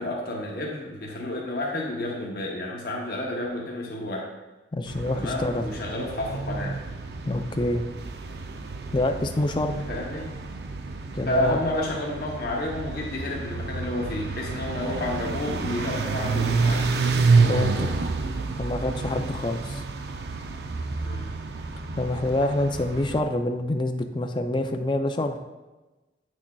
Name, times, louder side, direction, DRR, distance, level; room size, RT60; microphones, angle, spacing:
voice 1, 0.0-4.3 5.1-6.8 9.7-10.3 11.3-16.9 19.0-19.2 21.0-21.4, left 1 dB, 55° left, -2 dB, 0.8 m, -30 dB
voice 2, 4.7-5.6 7.3-7.8 8.9-9.8 11.1-11.6 17.5-17.9 18.6-19.8 22.0-25.4, left 1 dB, 25° left, 6 dB, 0.4 m, -26 dB
sound 1, 4.9-23.2, right 4 dB, 65° right, 0.5 m, -29 dB
8.4 x 6.1 x 2.3 m, 1.1 s
head